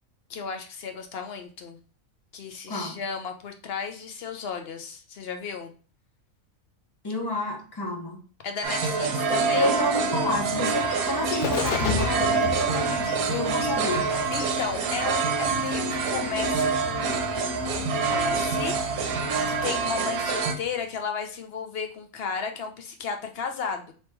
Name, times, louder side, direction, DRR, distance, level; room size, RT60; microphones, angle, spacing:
voice 1, 0.3-1.8 2.3-5.7 8.4-9.7 14.3-18.8 19.1-23.9, left 6 dB, 55° left, 0.8 m, -34 dB
voice 2, 2.7-3.0 7.0-8.2 9.0-9.1 9.5-14.1 19.4-19.5, left 1 dB, 20° left, 0.7 m, -30 dB
sound 1, 8.6-20.5, right 4 dB, 85° right, 1.1 m, -26 dB
Bird, 9.3-20.8, left 5 dB, 85° left, 1.1 m, -36 dB
3.3 x 3.0 x 4.4 m
omnidirectional pair, 1.5 m